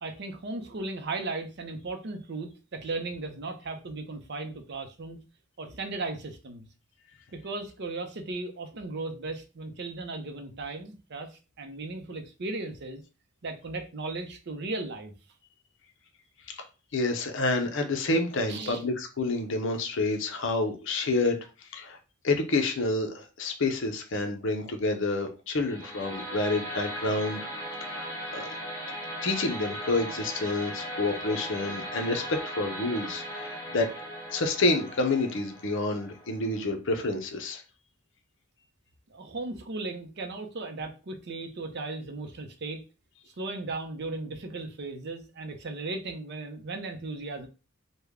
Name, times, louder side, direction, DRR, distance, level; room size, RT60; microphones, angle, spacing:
voice 1, 0.0-5.2 5.6-6.7 7.3-13.0 13.4-15.1 18.5-18.8 39.1-42.8 43.2-47.5, right 3 dB, 50° right, 0.6 m, -36 dB
voice 2, 16.9-22.0 22.2-27.5 27.8-28.5 29.2-33.9 34.3-37.6, left 2 dB, 60° left, 0.6 m, -28 dB
sound 1, 25.6-36.7, equal, 10° left, 1.1 m, -38 dB
3.2 x 2.2 x 3.5 m
head